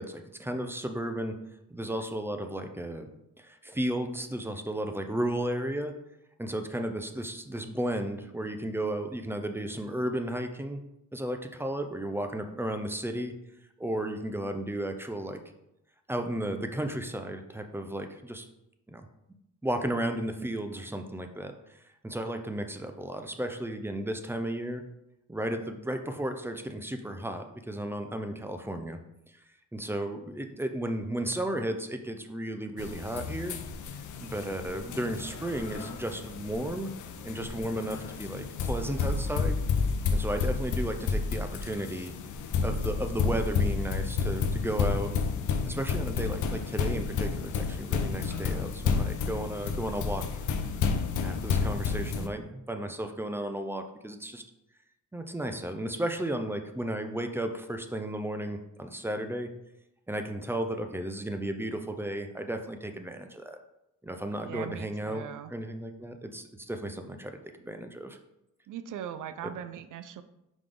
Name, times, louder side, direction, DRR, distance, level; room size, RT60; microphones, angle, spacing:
voice 1, 0.0-1.4 1.7-3.1 3.4-5.9 6.4-10.8 11.1-13.3 13.8-15.4 16.1-18.5 18.9-19.1 19.6-21.5 22.0-24.8 25.3-29.0 29.7-33.5 34.2-36.9 37.2-39.6 40.1-42.1 42.6-45.1 45.7-50.2 51.2-54.4 55.1-59.5 60.1-63.6 64.0-65.2 65.5-68.2 69.4-69.5, right 1 dB, 5° right, 6 dB, 0.5 m, -34 dB
sound 1, 32.8-52.3, left 5 dB, 65° left, 0.7 m, -31 dB
voice 2, 64.4-65.5 68.7-70.2, right 9 dB, 65° right, 10 dB, 0.6 m, -40 dB
5.8 x 5.1 x 3.7 m, 0.86 s
cardioid pair, 155°, 33 cm